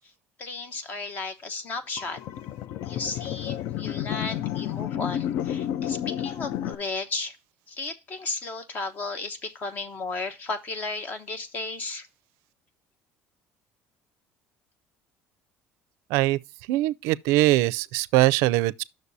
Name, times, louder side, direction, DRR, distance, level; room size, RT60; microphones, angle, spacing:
voice 1, 0.4-2.2 2.8-7.4 7.7-12.1, left 3 dB, 40° left, 1.0 m, -34 dB
sound 1, 2.0-6.7, left 11 dB, 65° left, 0.4 m, -31 dB
voice 2, 16.7-18.8, right 17 dB, 85° right, 0.4 m, -22 dB
9.6 x 6.5 x 2.7 m
cardioid pair, 145°, 5 cm